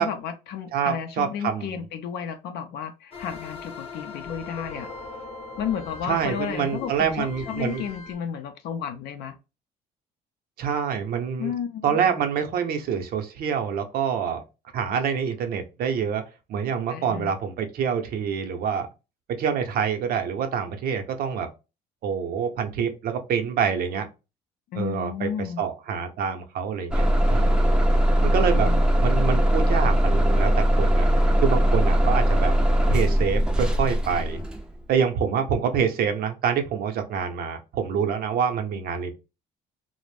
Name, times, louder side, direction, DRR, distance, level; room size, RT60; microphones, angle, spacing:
voice 1, 0.0-4.9 5.6-9.3 11.4-12.0 16.9-17.3 24.7-25.6 28.4-28.8, left 8 dB, 75° left, 0.4 m, -32 dB
voice 2, 0.7-1.9 6.1-7.8 10.6-11.5 11.8-14.4 14.7-16.2 16.5-18.9 19.3-21.5 22.0-24.1 24.7-27.9 28.2-28.7 29.0-31.1 31.4-32.5 32.9-34.4 34.9-39.1, right 7 dB, 65° right, 0.6 m, -26 dB
sound 1, 3.1-8.1, left 4 dB, 35° left, 0.8 m, -40 dB
Bus / Engine starting, 26.9-34.7, equal, 5° right, 0.4 m, -20 dB
2.5 x 2.0 x 3.2 m
cardioid pair, 110°, 17 cm